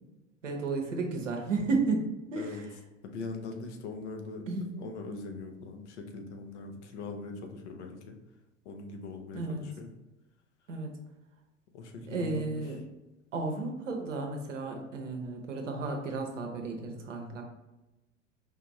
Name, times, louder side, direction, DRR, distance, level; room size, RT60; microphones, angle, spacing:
voice 1, 0.4-2.7 4.5-4.8 9.3-9.7 10.7-10.9 12.0-12.8 13.3-17.4, right 3 dB, 80° right, 2 dB, 0.8 m, -33 dB
voice 2, 3.0-8.2 8.6-9.9 11.7-12.6, left 3 dB, 65° left, 4 dB, 0.7 m, -41 dB
4.6 x 2.5 x 3.0 m, 1.0 s
figure-of-eight pair, 80°, 37 cm